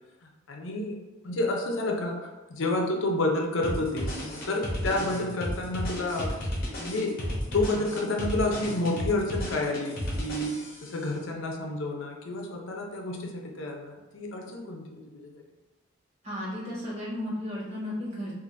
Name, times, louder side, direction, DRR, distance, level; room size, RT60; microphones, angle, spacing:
voice 1, 0.5-1.0 1.2-2.2 2.5-6.3 6.8-7.2 7.5-10.6 10.8-15.4, left 2 dB, 75° left, 1 dB, 0.6 m, -30 dB
sound 1, 3.6-10.9, equal, 45° left, 0.8 m, -33 dB
voice 2, 16.2-18.3, left 1 dB, 35° right, -7 dB, 1.2 m, -34 dB
4.6 x 2.5 x 2.6 m, 1.2 s
head